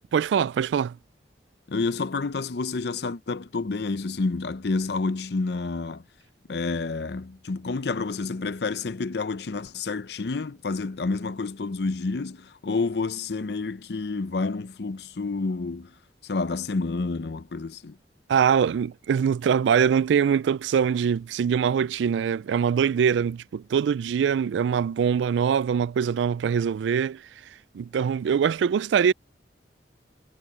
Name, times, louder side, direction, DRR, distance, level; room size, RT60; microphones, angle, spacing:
voice 1, 0.1-1.0 18.3-27.2 27.7-29.1, right 7 dB, 90° right, 0.3 m, -23 dB
voice 2, 1.7-6.0 6.5-15.9 16.2-18.0, left 3 dB, 65° left, 0.6 m, -29 dB
head